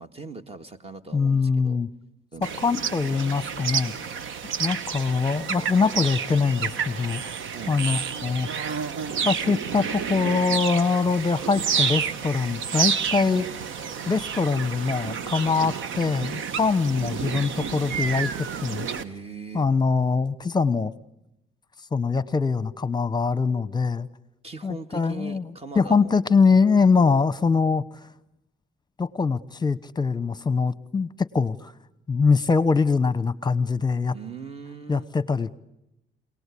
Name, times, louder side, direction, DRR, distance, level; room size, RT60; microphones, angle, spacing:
voice 1, 0.0-1.8 2.3-2.9 7.5-7.8 15.6-15.8 19.0-19.7 24.4-26.2 34.1-35.1, right 4 dB, 30° right, 8 dB, 1.9 m, -40 dB
voice 2, 1.1-1.9 2.4-3.9 4.6-7.3 7.7-8.5 9.2-13.5 14.1-18.9 19.5-20.9 21.9-24.1 24.6-25.5 25.7-28.1 29.0-31.7 32.1-34.1 34.9-35.6, left 4 dB, 20° left, 17 dB, 1.0 m, -23 dB
sound 1, 2.4-19.0, right 7 dB, 75° right, 1.2 m, -30 dB
27.5 x 18.5 x 8.5 m, 0.88 s
cardioid pair, 90°, 20 cm